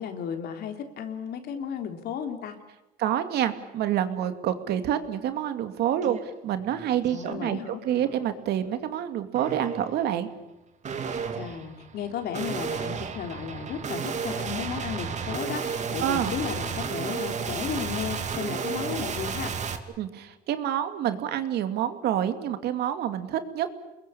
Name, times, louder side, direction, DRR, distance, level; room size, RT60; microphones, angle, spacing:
voice 1, 0.0-2.5 7.1-7.8 11.4-19.5, left 7 dB, 70° left, 5 dB, 3.7 m, -34 dB
voice 2, 3.0-10.3 16.0-16.3 20.0-23.7, right 10 dB, 75° right, 8 dB, 2.4 m, -28 dB
sound 1, 6.0-6.2 6.6-7.3 7.8-8.3 9.3-10.0 10.8-19.8, right 6 dB, 45° right, 2.7 m, -33 dB
28.5 x 21.5 x 8.6 m, 0.99 s
cardioid pair, 110°, 17 cm